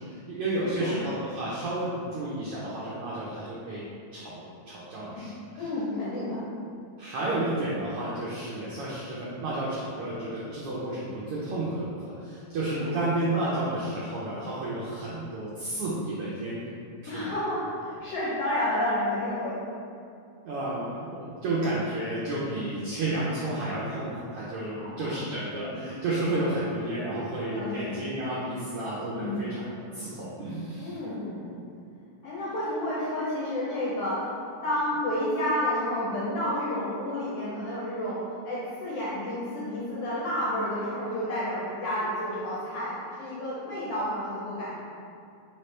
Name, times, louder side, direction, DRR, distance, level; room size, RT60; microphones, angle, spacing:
voice 1, 0.0-3.8 4.1-5.7 7.0-16.6 17.0-17.3 20.4-29.6 29.9-31.0 43.7-43.8, right 1 dB, 80° right, -8 dB, 1.3 m, -31 dB
voice 2, 0.6-1.0 5.1-6.4 12.7-13.0 17.1-19.6 24.7-25.3 27.5-28.0 29.1-29.5 30.8-31.6 32.2-34.3 34.6-44.8, left 1 dB, 75° left, -7 dB, 1.4 m, -31 dB
4.9 x 3.1 x 3.2 m, 2.5 s
omnidirectional pair, 3.4 m